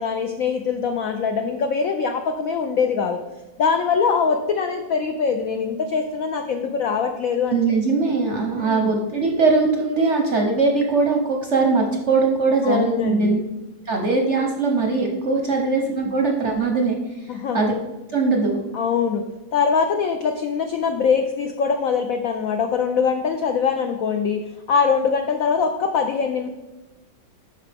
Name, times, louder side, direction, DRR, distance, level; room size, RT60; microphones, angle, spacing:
voice 1, 0.0-3.2 3.6-7.6 8.6-8.9 12.6-13.4 15.5-15.6 16.1-16.2 17.3-17.6 18.7-19.2 19.5-26.5, left 6 dB, 75° left, 5 dB, 0.7 m, -23 dB
voice 2, 7.5-13.4 13.9-17.7 18.1-18.6, right 3 dB, 55° right, 2 dB, 0.8 m, -21 dB
8.9 x 6.0 x 3.4 m, 1.1 s
omnidirectional pair, 2.1 m